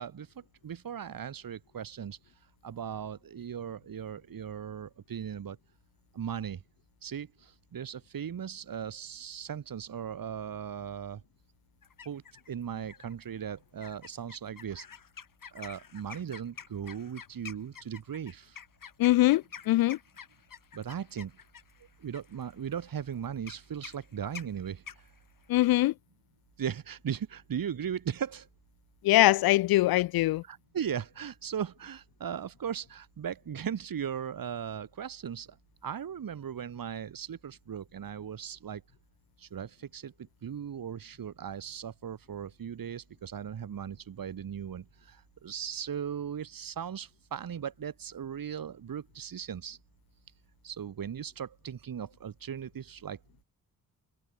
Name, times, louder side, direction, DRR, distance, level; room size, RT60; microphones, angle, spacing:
voice 1, 0.0-2.2 2.6-5.6 6.1-6.6 7.0-11.2 12.1-14.9 15.5-18.6 20.7-21.4 22.0-25.0 26.6-28.5 29.9-30.0 30.4-35.6 35.8-38.8 39.4-40.1 40.4-49.8 50.6-53.2, right 8 dB, 70° right, 5.3 m, -38 dB
sound 1, 11.8-12.5 12.9-13.2 13.8-25.7, left 7 dB, 65° left, 7.7 m, -48 dB
voice 2, 19.0-20.0 25.5-25.9 29.0-30.4, left 17 dB, 90° left, 0.5 m, -23 dB
cardioid pair, 70°, 35 cm